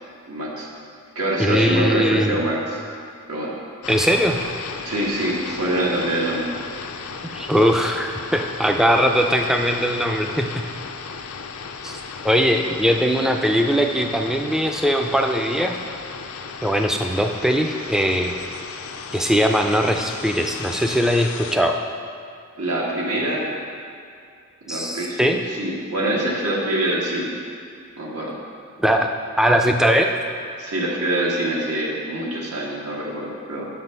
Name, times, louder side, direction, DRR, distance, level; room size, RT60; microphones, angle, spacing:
voice 1, 0.3-0.7 1.1-2.8 3.3-3.5 4.8-6.5 22.6-23.5 24.7-25.3 25.6-27.3 28.0-28.4 30.6-33.7, right 1 dB, 85° right, -4 dB, 1.5 m, -24 dB
voice 2, 1.4-2.4 3.9-4.4 7.2-10.7 11.8-12.0 12.2-15.8 16.6-18.3 19.1-21.8 24.7-25.4 28.8-29.1 29.4-30.1, equal, ahead, 3 dB, 0.3 m, -20 dB
sound 1, 3.8-21.6, left 5 dB, 70° left, 0.4 m, -35 dB
6.2 x 5.5 x 5.4 m, 2.4 s
head